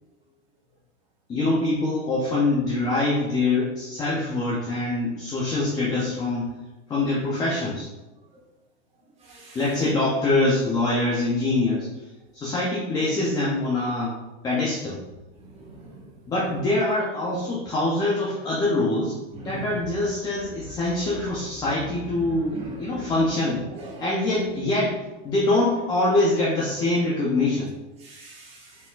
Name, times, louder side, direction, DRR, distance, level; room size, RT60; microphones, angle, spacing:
voice 1, 1.3-6.5 6.9-7.9 9.5-11.9 12.3-14.1 14.4-15.0 16.3-19.2 19.4-23.6 24.0-25.0 25.2-27.7, left 2 dB, 10° left, -6 dB, 0.4 m, -24 dB
voice 2, 9.2-9.6 15.6-16.0 19.4-19.6 22.2-23.1 23.7-24.0 28.0-28.7, right 2 dB, 20° right, -7 dB, 1.4 m, -39 dB
4.3 x 3.6 x 2.3 m, 1.1 s
supercardioid pair, 150°, 34 cm